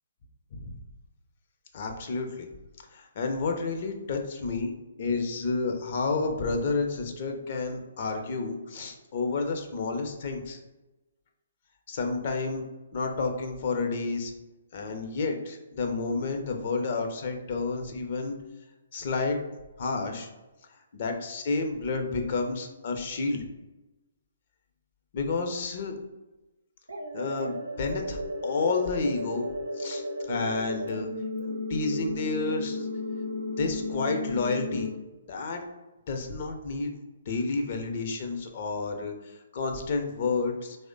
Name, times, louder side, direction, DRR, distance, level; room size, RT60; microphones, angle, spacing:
voice 1, 1.7-2.5 2.9-4.7 5.0-10.6 11.9-12.6 12.9-14.3 14.7-18.4 18.9-19.4 19.8-20.3 21.0-23.5 25.1-25.9 27.1-29.5 29.8-31.1 31.7-32.9 33.6-34.9 35.3-35.6 36.1-36.9 37.3-39.1 39.5-40.8, left 3 dB, 50° left, 3 dB, 0.5 m, -30 dB
sound 1, 26.9-34.9, left 2 dB, 85° right, 0.5 m, -34 dB
3.1 x 2.1 x 3.7 m, 1.1 s
figure-of-eight pair, 135°, 0 cm